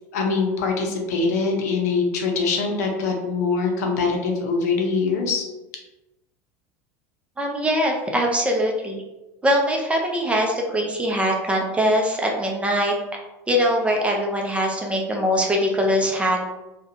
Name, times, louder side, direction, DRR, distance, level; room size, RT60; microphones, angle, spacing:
voice 1, 0.1-5.4, left 4 dB, 85° left, 2 dB, 0.5 m, -23 dB
voice 2, 7.4-9.0 9.4-12.9 13.5-16.4, equal, 15° right, 0 dB, 0.4 m, -22 dB
2.4 x 2.1 x 2.7 m, 1.0 s
supercardioid pair, 100°, 8 cm